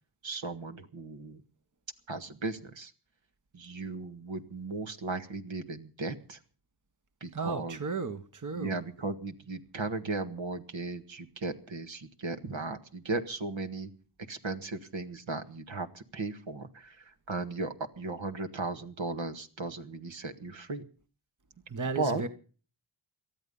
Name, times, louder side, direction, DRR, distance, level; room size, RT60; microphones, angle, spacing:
voice 1, 0.2-1.4 2.1-2.9 3.5-6.4 7.2-7.8 8.5-13.9 14.3-20.8 22.0-22.2, right 3 dB, 65° right, 1.8 m, -36 dB
voice 2, 7.3-8.8 21.7-22.3, right 4 dB, 35° right, 1.3 m, -34 dB
18.5 x 12.5 x 5.4 m
cardioid pair, 45°, 50 cm